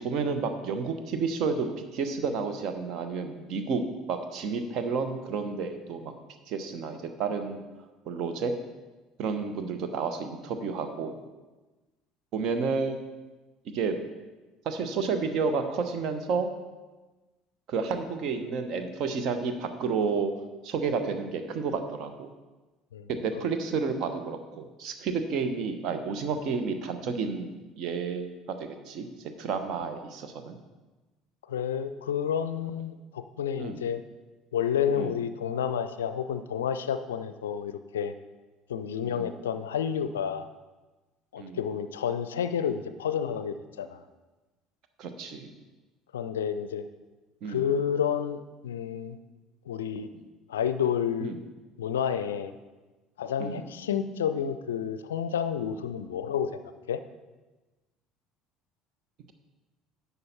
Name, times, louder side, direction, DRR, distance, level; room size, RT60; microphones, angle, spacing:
voice 1, 0.0-1.7 1.9-3.8 4.1-6.1 6.5-7.6 8.1-8.5 9.2-11.2 12.3-13.0 13.7-14.0 14.6-16.5 17.7-20.3 20.6-22.3 23.1-30.6 33.6-33.8 35.0-35.1 39.0-39.3 41.4-41.6 45.0-45.5 47.4-47.6 51.2-51.4 53.4-53.6, right 5 dB, 50° right, 8 dB, 0.9 m, -31 dB
voice 2, 31.5-34.0 34.5-38.1 38.7-40.5 41.3-44.0 46.1-46.8 47.5-49.2 49.7-50.1 50.5-51.3 51.8-52.5 53.2-56.5 56.9-57.0, left 8 dB, 75° left, 11 dB, 0.4 m, -30 dB
10.5 x 6.9 x 4.2 m, 1.2 s
figure-of-eight pair, 60°, 0 cm